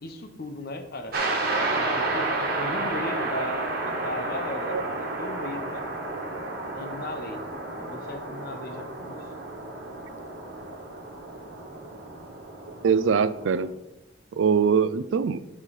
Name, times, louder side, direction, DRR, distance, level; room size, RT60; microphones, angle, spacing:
voice 1, 0.0-1.2 1.4-5.9 6.7-7.5 7.7-9.3, left 2 dB, 50° left, 0.9 m, -37 dB
sound 1, 1.1-13.7, right 2 dB, 50° right, 1.6 m, -31 dB
voice 2, 12.7-13.7 14.3-15.4, right 6 dB, 70° right, 0.4 m, -23 dB
9.7 x 5.6 x 4.0 m
head